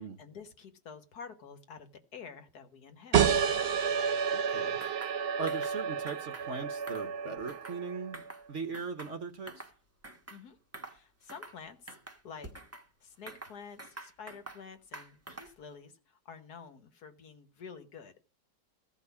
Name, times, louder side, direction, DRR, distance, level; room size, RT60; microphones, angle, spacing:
voice 1, 0.0-3.3 10.3-10.6 10.9-12.5 13.0-18.2, left 6 dB, 60° left, 1.8 m, -49 dB
sound 1, 3.1-8.3, right 7 dB, 65° right, 0.5 m, -30 dB
voice 2, 4.3-4.8 5.4-8.2 8.5-9.7, right 5 dB, 50° right, 1.0 m, -39 dB
sound 2, 4.8-5.2 5.5-5.8 6.1-6.5 6.8-7.8 8.1-8.4 8.7-9.7 10.0-10.4 10.7-11.0 11.3-11.6 11.9-12.9 13.3-14.6 14.9-15.6, right 2 dB, 10° right, 0.9 m, -47 dB
14.5 x 5.2 x 8.2 m
omnidirectional pair, 1.9 m